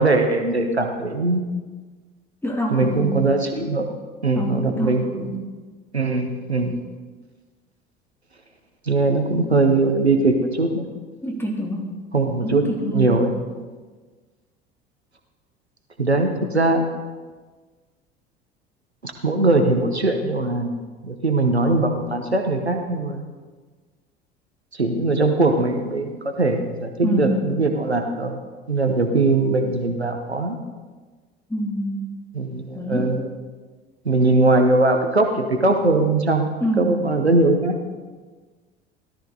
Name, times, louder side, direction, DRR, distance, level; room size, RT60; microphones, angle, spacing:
voice 1, 0.0-1.5 2.7-3.9 4.2-5.3 5.9-6.8 8.8-10.9 12.1-13.3 16.0-16.8 19.0-20.8 21.0-23.2 24.7-28.4 28.7-30.6 32.3-33.3 34.0-37.8, right 2 dB, 90° right, 5 dB, 1.0 m, -21 dB
voice 2, 2.4-3.2 4.3-5.3 11.2-11.9 12.4-13.1 27.0-27.4 31.5-32.1 32.7-33.2 36.6-36.9, right 1 dB, 5° left, 0 dB, 2.9 m, -26 dB
17.0 x 12.5 x 4.0 m, 1.4 s
figure-of-eight pair, 65°, 31 cm